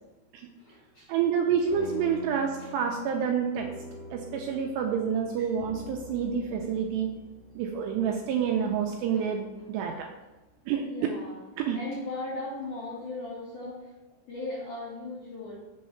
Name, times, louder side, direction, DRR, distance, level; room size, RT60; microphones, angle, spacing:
voice 1, 0.4-1.1 1.6-1.7 2.3-2.7 5.4-5.5 9.1-9.3 9.6-9.7 10.8-11.4 11.7-13.9 14.3-15.6, left 2 dB, 70° left, -8 dB, 1.9 m, -38 dB
voice 2, 1.1-3.7 4.1-7.1 7.6-10.1 10.7-11.1 11.6-11.8, right 7 dB, 85° right, 2 dB, 2.5 m, -28 dB
sound 1, 1.7-10.4, left 1 dB, 55° right, 1.2 m, -46 dB
6.6 x 3.1 x 5.5 m, 1.1 s
omnidirectional pair, 5.2 m